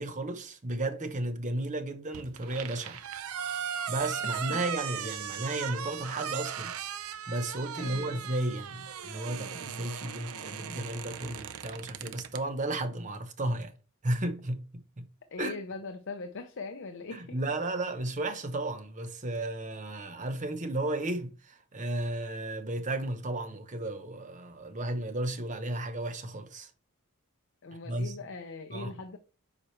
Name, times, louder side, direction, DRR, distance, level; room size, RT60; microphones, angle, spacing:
voice 1, 0.0-3.0 3.5-6.7 7.3-13.7 14.0-15.1 15.4-15.5 17.1-26.7 27.8-28.2 28.7-28.9, right 2 dB, 35° right, 0.9 m, -34 dB
sound 1, 2.1-12.4, right 8 dB, 85° right, 0.6 m, -38 dB
voice 2, 4.2-4.6 7.7-8.3 15.3-17.4 27.6-29.2, left 3 dB, 60° left, 0.6 m, -41 dB
7.4 x 4.9 x 3.2 m
head